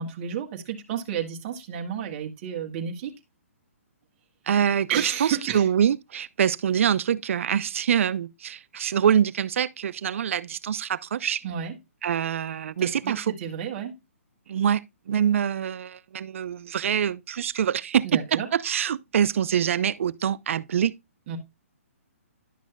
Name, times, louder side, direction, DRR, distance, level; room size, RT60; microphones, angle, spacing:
voice 1, 0.0-3.1 4.9-5.7 11.4-11.7 12.8-13.9 18.0-18.5 21.3-21.4, right 8 dB, 40° right, 1.5 m, -31 dB
voice 2, 4.5-11.4 12.0-13.3 14.5-20.9, right 8 dB, 60° right, 0.5 m, -25 dB
11.5 x 6.2 x 2.3 m
hypercardioid pair, 145°, 8 cm